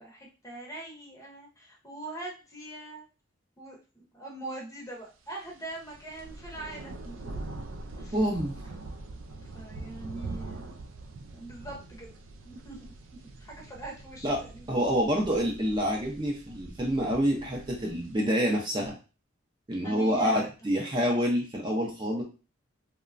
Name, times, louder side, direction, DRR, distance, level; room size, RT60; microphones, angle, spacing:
voice 1, 0.0-3.0 3.6-7.3 8.0-8.2 9.4-10.8 11.3-12.1 12.4-12.9 13.4-14.8 19.8-20.4, right 2 dB, 15° left, -1 dB, 0.7 m, -42 dB
sound 1, 5.5-18.2, right 2 dB, 85° right, 0.4 m, -43 dB
voice 2, 8.1-8.5 14.2-14.4 14.7-18.9 19.7-22.2, equal, 25° right, 0 dB, 0.5 m, -27 dB
2.9 x 2.2 x 2.4 m, 0.32 s
head